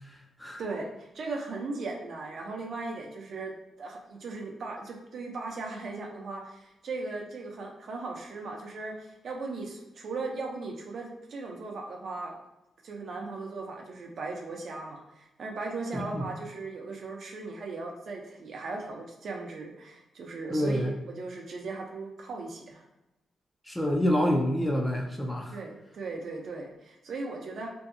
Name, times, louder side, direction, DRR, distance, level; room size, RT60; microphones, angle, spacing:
voice 1, 0.6-3.5 3.8-12.3 12.8-22.8 25.5-27.7, right 3 dB, 55° right, 1 dB, 0.5 m, -38 dB
voice 2, 15.9-16.2 20.5-20.9 23.7-25.6, equal, 10° left, 0 dB, 0.4 m, -27 dB
2.6 x 2.2 x 2.5 m, 0.96 s
cardioid pair, 125°, 0 cm